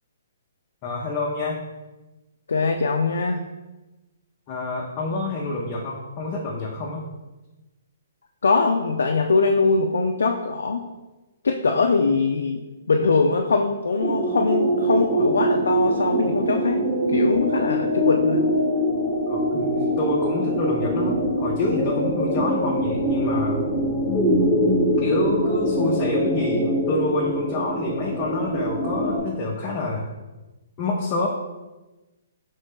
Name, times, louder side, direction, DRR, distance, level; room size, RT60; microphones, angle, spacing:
voice 1, 0.8-1.6 4.5-7.1 19.3-23.6 25.0-30.1 30.8-31.3, left 2 dB, 30° left, -3 dB, 0.5 m, -27 dB
voice 2, 2.5-3.4 8.4-10.8 11.4-12.6 12.9-16.8 17.1-18.4, left 4 dB, 90° left, 3 dB, 0.3 m, -22 dB
sound 1, 14.0-29.2, equal, ahead, 0.9 m, -23 dB
4.0 x 3.3 x 3.6 m, 1.1 s
hypercardioid pair, 160°, 0 cm